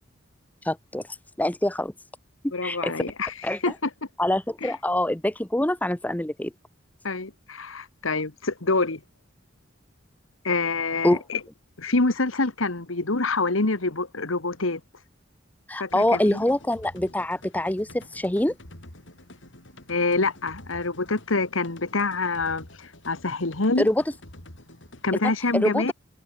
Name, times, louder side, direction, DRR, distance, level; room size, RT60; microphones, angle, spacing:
voice 1, 0.6-1.0 1.4-1.9 2.6-2.9 3.4-3.7 4.2-6.5 11.0-11.2 15.7-18.5 23.8-24.0 25.2-25.9, left 1 dB, 10° left, 0.8 m, -25 dB
voice 2, 2.5-3.3 3.6-3.9 4.6-4.7 7.0-9.0 10.4-11.4 11.8-14.8 15.8-16.4 19.9-23.9 25.0-25.9, left 3 dB, 85° left, 1.8 m, -26 dB
sound 1, 15.9-25.1, left 1 dB, 65° left, 4.2 m, -48 dB
head